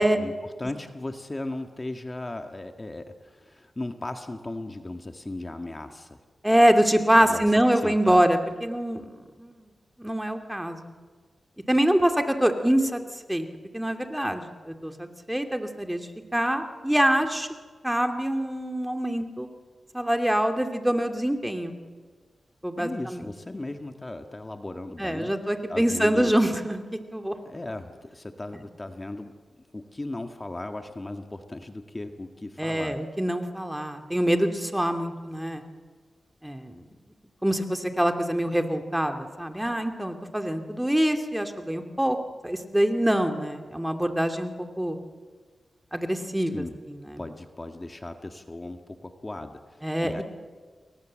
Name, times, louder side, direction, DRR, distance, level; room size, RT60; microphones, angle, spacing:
voice 1, 0.0-6.2 7.2-7.4 7.8-8.2 22.8-25.3 25.7-26.3 27.5-33.0 46.5-46.8 47.2-50.2, left 2 dB, 30° left, 6 dB, 1.8 m, -37 dB
voice 2, 6.4-9.0 9.4-9.6 10.0-10.9 11.7-13.0 13.3-13.5 13.7-17.5 17.8-19.5 19.9-21.8 22.6-23.3 25.0-26.8 27.1-27.4 32.6-35.6 36.4-36.8 37.4-42.2 42.4-45.0 45.9-47.2 49.8-50.2, right 1 dB, 10° right, 5 dB, 2.6 m, -25 dB
29.0 x 23.0 x 7.6 m, 1.5 s
cardioid pair, 60°, 0 cm